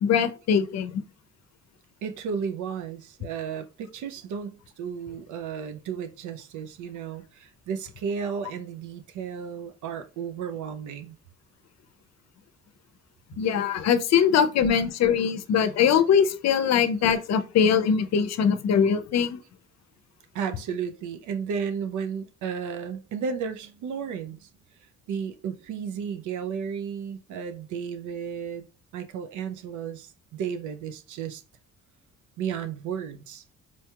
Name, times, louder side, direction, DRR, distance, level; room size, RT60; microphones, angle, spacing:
voice 1, 0.0-1.0 13.4-19.4, left 7 dB, 60° left, 0.6 m, -22 dB
voice 2, 2.0-11.2 20.3-24.5 25.1-28.6 28.9-31.4 32.4-33.4, right 7 dB, 80° right, 0.5 m, -33 dB
4.4 x 2.8 x 2.3 m
cardioid pair, 90°, 30 cm